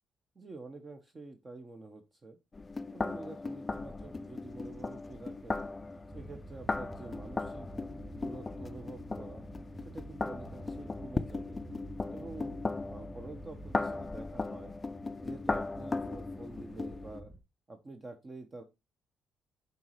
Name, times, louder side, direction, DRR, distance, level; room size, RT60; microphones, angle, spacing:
voice 1, 0.3-2.4 2.9-5.6 6.1-7.7 8.1-9.4 9.8-11.6 12.1-14.7 15.2-17.3 17.7-18.6, right 3 dB, 30° right, 6 dB, 0.9 m, -47 dB
sound 1, 2.5-17.2, left 3 dB, 25° left, 0.4 m, -37 dB
sound 2, 3.8-17.4, right 1 dB, 10° right, 2.7 m, -49 dB
10.5 x 4.1 x 3.1 m, 0.23 s
cardioid pair, 90°, 0 cm